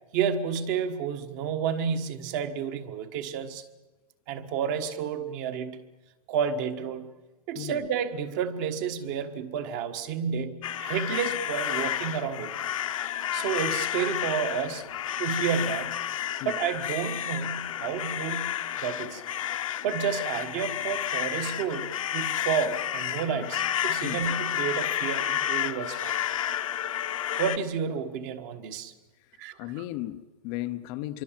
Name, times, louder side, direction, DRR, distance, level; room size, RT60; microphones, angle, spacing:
voice 1, 0.1-3.6 4.3-5.8 6.3-7.1 7.5-12.5 13.3-14.9 15.2-16.0 16.4-19.2 19.8-26.1 27.4-28.9 29.4-29.6, right 7 dB, 25° right, 9 dB, 1.4 m, -30 dB
sound 1, 10.6-27.6, left 11 dB, 55° left, 1.2 m, -31 dB
voice 2, 29.6-31.2, left 16 dB, 20° left, 12 dB, 0.8 m, -35 dB
25.5 x 24.0 x 7.4 m, 1.2 s
hypercardioid pair, 165°, 20 cm